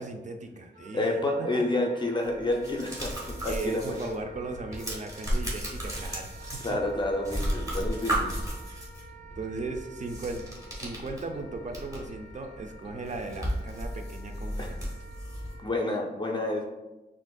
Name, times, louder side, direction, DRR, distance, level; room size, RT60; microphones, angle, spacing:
voice 1, 0.0-1.6 3.4-6.8 9.4-10.5 10.7-14.9, right 3 dB, 40° right, 5 dB, 0.5 m, -37 dB
Wind instrument woodwind instrument, 0.7-15.8, right 3 dB, 90° right, 1.1 m, -51 dB
voice 2, 0.9-4.1 6.6-8.4 14.6-14.7 15.6-16.7, left 2 dB, 25° left, 0 dB, 0.5 m, -29 dB
sound 1, 2.2-4.1 4.4-7.0 7.2-9.0 10.0-12.1 12.5-12.6 12.9-15.5, equal, 20° right, 1.2 m, -34 dB
sound 2, 3.2-15.6, left 1 dB, 60° right, 1.5 m, -45 dB
6.2 x 2.5 x 2.2 m, 1.1 s
wide cardioid pair, 120°, 18 cm